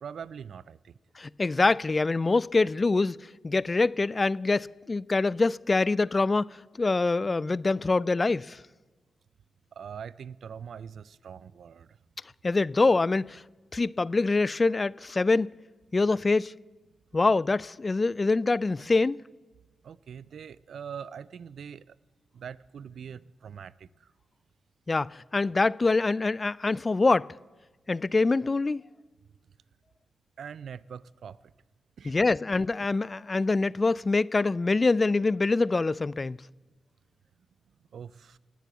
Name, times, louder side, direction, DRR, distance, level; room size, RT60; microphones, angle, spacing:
voice 1, 0.0-1.0 9.7-12.0 19.8-22.0 22.3-24.1 30.4-31.4 32.0-32.1 37.9-38.4, right 7 dB, 70° right, 0.4 m, -43 dB
voice 2, 1.2-3.2 3.4-8.6 12.4-13.4 13.7-15.5 15.9-16.5 17.1-19.2 24.9-27.3 27.9-28.8 32.1-36.4, left 3 dB, 35° left, 0.3 m, -25 dB
18.0 x 8.3 x 7.0 m
supercardioid pair, 50°, 0 cm